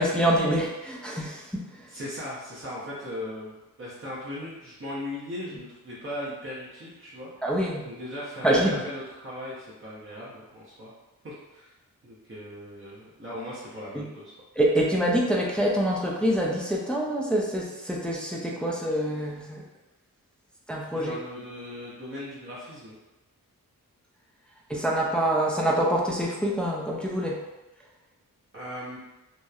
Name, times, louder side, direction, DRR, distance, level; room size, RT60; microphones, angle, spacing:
voice 1, 0.0-1.9 7.4-7.8 8.4-8.8 13.9-14.1 14.6-19.6 20.7-21.2 24.7-27.4, right 1 dB, 5° left, -3 dB, 0.3 m, -25 dB
voice 2, 1.9-7.3 7.8-10.9 11.2-11.7 12.0-14.3 20.9-22.9 28.5-29.0, left 1 dB, 35° right, -8 dB, 0.6 m, -38 dB
2.8 x 2.0 x 2.3 m, 1.0 s
wide cardioid pair, 95°, 35 cm